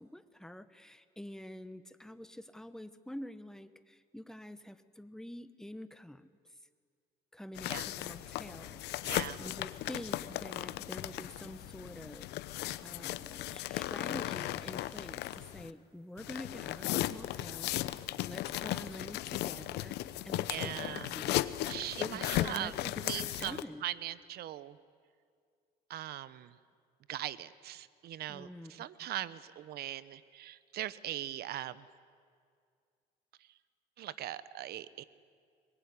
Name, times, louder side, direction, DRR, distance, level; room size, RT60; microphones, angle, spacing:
voice 1, 0.0-6.3 7.3-8.8 9.4-12.3 12.5-17.7 18.3-20.0 20.2-21.5 22.0-23.9 28.3-28.9, left 1 dB, 5° left, 12 dB, 1.1 m, -47 dB
sound 1, 7.6-15.7 16.2-23.6, left 15 dB, 85° left, 0.8 m, -36 dB
voice 2, 9.0-9.4 20.5-21.1 21.7-22.7 23.0-24.8 25.9-26.6 27.1-31.8 34.0-35.0, right 13 dB, 70° right, 17 dB, 1.0 m, -40 dB
23.0 x 21.0 x 9.8 m, 2.2 s
cardioid pair, 110°, 17 cm